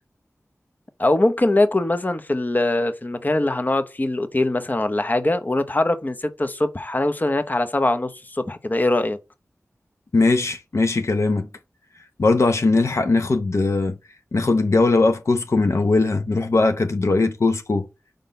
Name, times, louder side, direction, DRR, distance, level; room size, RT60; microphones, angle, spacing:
voice 1, 1.0-9.2, left 2 dB, 35° left, 0.8 m, -22 dB
voice 2, 10.1-11.5 12.2-14.0 14.3-17.9, left 3 dB, 70° left, 0.8 m, -20 dB
5.1 x 3.8 x 5.5 m
wide cardioid pair, 50°, 5 cm